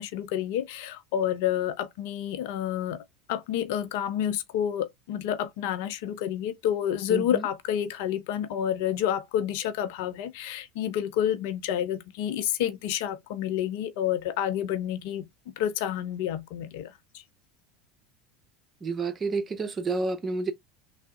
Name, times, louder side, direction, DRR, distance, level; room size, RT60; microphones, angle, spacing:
voice 1, 0.0-3.0 3.3-17.2, left 10 dB, 60° left, 0.5 m, -29 dB
voice 2, 7.1-7.5 18.8-20.5, right 3 dB, 30° right, 0.8 m, -29 dB
3.3 x 2.0 x 3.7 m
figure-of-eight pair, 75°, 0 cm